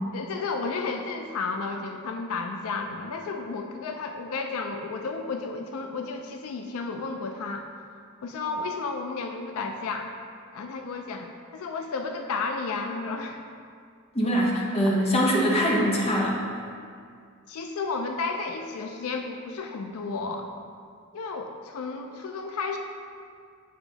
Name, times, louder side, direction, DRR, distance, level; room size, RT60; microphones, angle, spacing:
voice 1, 0.1-7.7 8.2-10.1 10.5-13.4 14.8-15.0 17.5-20.5 21.1-22.8, left 4 dB, 80° left, 4 dB, 0.4 m, -32 dB
voice 2, 14.1-16.4, equal, 30° left, -3 dB, 1.0 m, -23 dB
8.6 x 3.5 x 4.0 m, 2.3 s
head